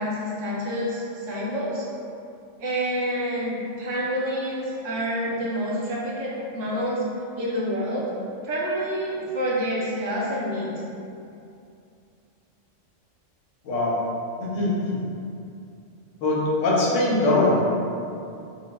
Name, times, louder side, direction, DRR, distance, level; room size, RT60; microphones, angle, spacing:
voice 1, 0.0-1.9 2.6-7.0 7.4-8.1 8.4-10.7, equal, 75° right, -6 dB, 1.1 m, -28 dB
voice 2, 13.6-14.0 14.4-15.0 16.2-17.6, left 2 dB, 80° left, -5 dB, 1.1 m, -22 dB
4.5 x 2.0 x 2.2 m, 2.6 s
omnidirectional pair, 1.3 m